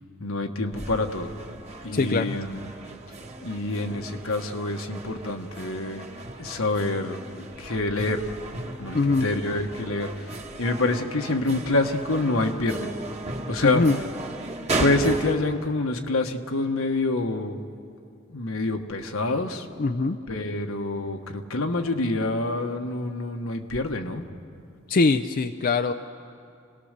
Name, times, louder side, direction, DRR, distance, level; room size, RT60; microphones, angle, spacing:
voice 1, 0.2-1.3 1.8-2.6 3.4-6.1 6.4-8.3 8.8-12.9 13.5-13.8 14.8-17.6 18.3-19.7 20.3-24.2, left 2 dB, 80° left, 5 dB, 1.4 m, -27 dB
sound 1, 0.7-15.3, right 2 dB, 30° right, 1.7 m, -36 dB
voice 2, 1.9-2.4 8.9-9.3 13.6-14.0 19.8-20.2 24.9-25.9, left 3 dB, 45° left, 8 dB, 0.5 m, -22 dB
29.0 x 19.0 x 6.7 m, 2.4 s
head